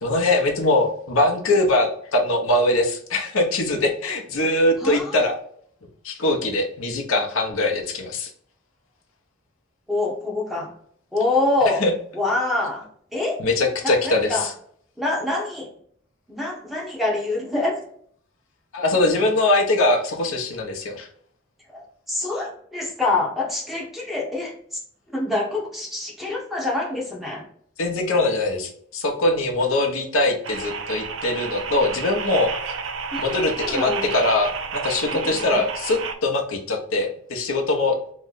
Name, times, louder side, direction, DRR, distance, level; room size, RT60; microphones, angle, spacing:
voice 1, 0.0-5.3 6.0-8.3 11.8-11.9 13.4-14.5 18.7-21.1 27.8-32.7 33.2-37.9, left 2 dB, 85° left, 1 dB, 0.7 m, -22 dB
voice 2, 4.8-5.2 9.9-10.7 11.1-11.8 12.1-12.9 13.1-13.4 13.8-14.5 15.0-15.7 16.3-17.8 21.7-24.8 25.1-27.4 33.1-34.1 35.1-35.6, left 2 dB, ahead, -2 dB, 0.8 m, -26 dB
sound 1, 30.4-36.2, right 5 dB, 65° right, 0.4 m, -31 dB
3.0 x 2.1 x 3.7 m, 0.62 s
head